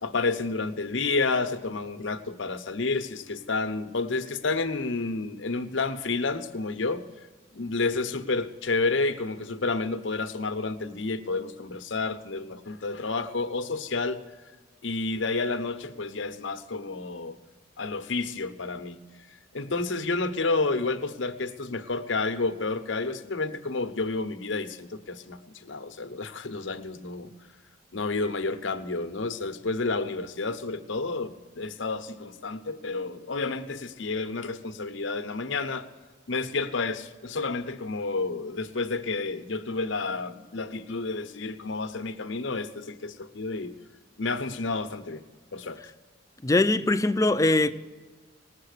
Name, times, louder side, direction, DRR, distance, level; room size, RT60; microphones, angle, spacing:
voice 1, 0.0-7.1 7.5-14.2 14.8-17.4 17.8-19.0 19.5-27.3 27.9-35.9 36.3-43.7 44.2-45.2 45.5-45.8, left 3 dB, 85° left, 0.9 m, -30 dB
voice 2, 46.4-47.7, left 2 dB, 15° left, 0.5 m, -22 dB
19.0 x 7.6 x 6.6 m
head